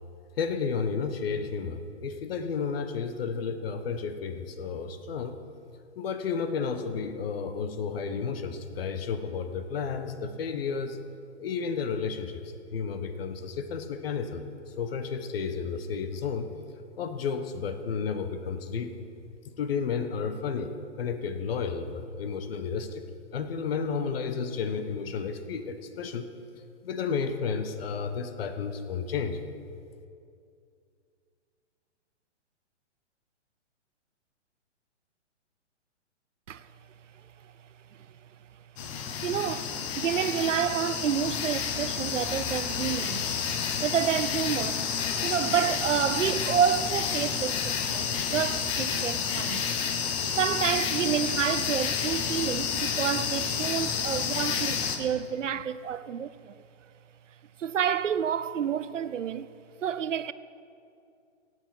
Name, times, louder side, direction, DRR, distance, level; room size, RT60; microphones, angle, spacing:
voice 1, 0.4-5.4 6.0-11.0 11.4-12.4 12.7-16.5 17.0-18.9 19.6-20.7 21.0-23.0 23.3-26.3 26.8-29.4, left 5 dB, 55° left, 1.3 m, -32 dB
sound 1, 38.8-55.0, left 7 dB, 25° left, 1.1 m, -30 dB
voice 2, 39.1-44.8 45.2-49.7 50.4-56.6 57.6-59.5 59.8-60.3, right 8 dB, 90° right, 0.7 m, -29 dB
17.0 x 7.8 x 6.1 m
hypercardioid pair, 145°, 36 cm